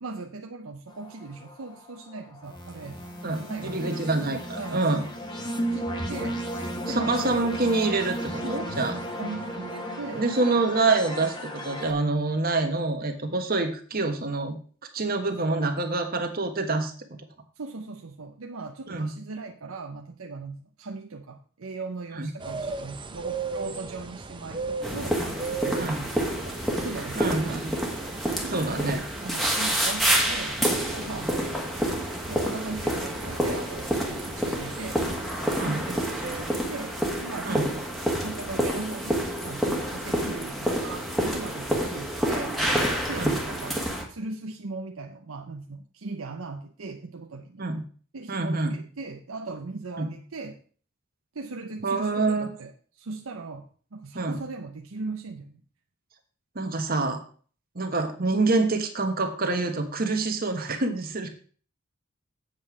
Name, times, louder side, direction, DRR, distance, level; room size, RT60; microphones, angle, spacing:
voice 1, 0.0-3.0 3.5-4.1 4.6-5.0 5.5-6.4 6.9-7.4 8.4-8.9 9.2-10.3 15.3-15.7 17.6-26.1 26.4-27.8 28.4-28.9 29.2-31.3 32.2-35.2 35.6-37.8 38.2-42.6 43.1-47.7 48.1-50.6 51.3-53.7 53.9-55.6, right 3 dB, 85° right, 3 dB, 0.7 m, -39 dB
sound 1, 0.9-11.9, equal, 20° left, 1.5 m, -34 dB
voice 2, 3.2-5.0 6.9-8.9 10.1-14.6 14.9-17.2 18.9-19.1 22.2-22.3 25.8-26.0 27.1-27.7 28.5-29.0 35.6-35.8 37.4-37.7 43.2-43.4 47.6-47.8 48.3-48.7 50.0-50.1 51.8-52.5 54.1-54.4 56.5-57.2 57.7-61.3, right 3 dB, 45° right, 5 dB, 1.3 m, -26 dB
sound 2, 22.4-36.5, right 4 dB, 25° right, 0.8 m, -38 dB
sound 3, 24.8-44.0, right 1 dB, ahead, 1.5 m, -28 dB
7.8 x 7.6 x 4.9 m, 0.42 s
head